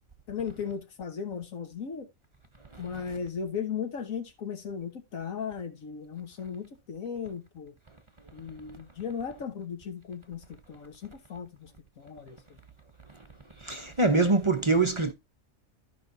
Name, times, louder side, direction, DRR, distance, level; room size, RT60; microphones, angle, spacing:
voice 1, 0.3-2.1 2.8-7.7 8.3-11.7 12.0-12.6, left 7 dB, 75° left, 1.5 m, -36 dB
voice 2, 13.7-15.1, right 3 dB, 30° right, 0.6 m, -24 dB
13.5 x 5.3 x 2.6 m
omnidirectional pair, 1.5 m